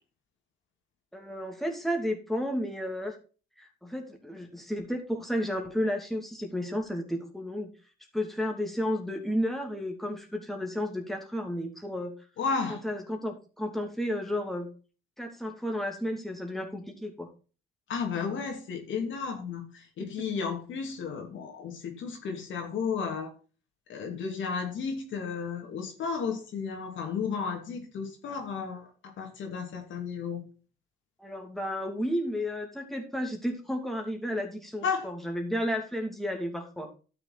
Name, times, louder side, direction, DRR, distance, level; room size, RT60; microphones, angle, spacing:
voice 1, 1.1-3.2 3.6-7.7 8.1-12.1 12.7-14.7 15.2-17.3 31.2-36.9, equal, ahead, 2 dB, 2.7 m, -32 dB
voice 2, 12.4-12.8 17.9-23.3 23.9-30.4 34.8-35.1, left 5 dB, 75° left, 3 dB, 2.9 m, -33 dB
12.5 x 6.6 x 4.1 m, 0.35 s
cardioid pair, 90°, 20 cm